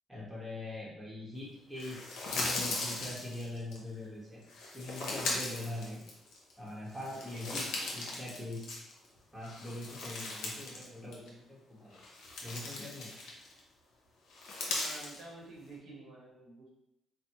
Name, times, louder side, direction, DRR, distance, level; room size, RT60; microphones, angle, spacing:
voice 1, 0.1-4.4 4.7-6.0 6.6-8.8 9.3-12.0 12.4-13.1, left 1 dB, 15° right, -5 dB, 0.9 m, -42 dB
sound 1, 1.8-3.8 4.5-6.5 6.9-9.1 9.4-10.9 11.1-11.3 11.9-13.6 14.3-15.2, left 2 dB, 80° left, 0.6 m, -38 dB
voice 2, 14.6-16.7, right 2 dB, 70° right, -3 dB, 1.0 m, -50 dB
3.3 x 2.0 x 2.9 m, 0.81 s
cardioid pair, 90°, 0 cm